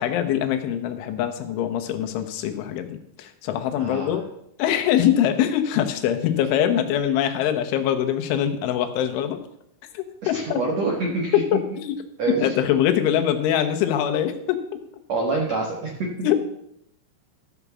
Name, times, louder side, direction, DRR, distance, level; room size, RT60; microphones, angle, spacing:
voice 1, 0.0-4.2 4.6-9.4 9.9-10.6 11.3-12.0 12.4-14.6 16.2-16.4, left 10 dB, 85° left, 6 dB, 3.4 m, -23 dB
voice 2, 3.8-4.2 10.3-11.4 12.2-12.5 15.1-16.4, right 3 dB, 70° right, 0 dB, 1.6 m, -26 dB
13.5 x 6.1 x 6.9 m, 0.76 s
omnidirectional pair, 5.5 m